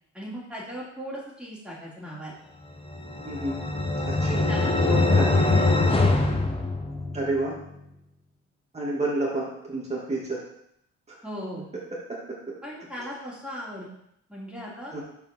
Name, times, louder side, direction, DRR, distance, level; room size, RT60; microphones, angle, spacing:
voice 1, 0.1-2.4 4.3-5.7 11.2-11.6 12.6-13.9 14.3-14.9, equal, 5° right, -6 dB, 3.1 m, -38 dB
sound 1, 2.8-7.3, left 2 dB, 20° left, 1.1 m, -23 dB
voice 2, 3.2-3.6 4.0-4.5 4.9-5.3 7.1-7.5 8.7-10.4 14.9-15.0, right 2 dB, 20° right, -5 dB, 2.4 m, -29 dB
5.2 x 5.1 x 5.4 m, 0.75 s
cardioid pair, 90°, 30 cm